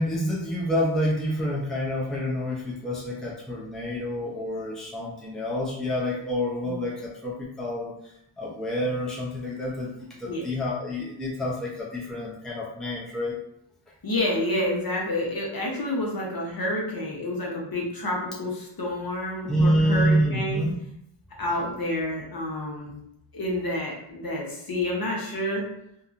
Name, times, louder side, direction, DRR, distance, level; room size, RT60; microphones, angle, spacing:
voice 1, 0.0-7.9 8.4-13.4 19.5-20.7, equal, ahead, -4 dB, 0.6 m, -27 dB
voice 2, 14.0-20.6 21.4-22.9 23.3-25.6, left 1 dB, 45° left, -2 dB, 0.9 m, -29 dB
2.7 x 2.3 x 2.5 m, 0.77 s
cardioid pair, 65°, 49 cm